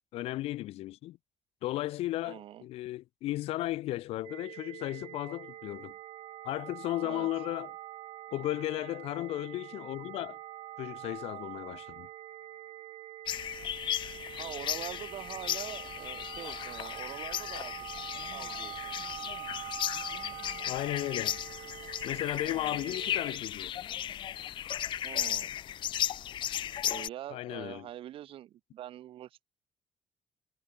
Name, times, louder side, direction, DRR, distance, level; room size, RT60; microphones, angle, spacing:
voice 1, 0.1-1.2 1.6-5.9 6.4-7.7 8.3-10.4 10.8-12.1 20.7-21.4 22.0-23.7 27.3-27.9, left 16 dB, 85° left, 0.6 m, -35 dB
voice 2, 2.2-2.6 7.0-7.3 14.3-17.7 18.3-18.9 22.4-22.8 25.0-25.5 26.8-29.4, right 12 dB, 65° right, 7.7 m, -44 dB
sound 1, 4.2-23.4, right 15 dB, 85° right, 1.8 m, -45 dB
sound 2, 13.3-27.1, left 11 dB, 55° left, 1.0 m, -36 dB
cardioid pair, 165°, 10 cm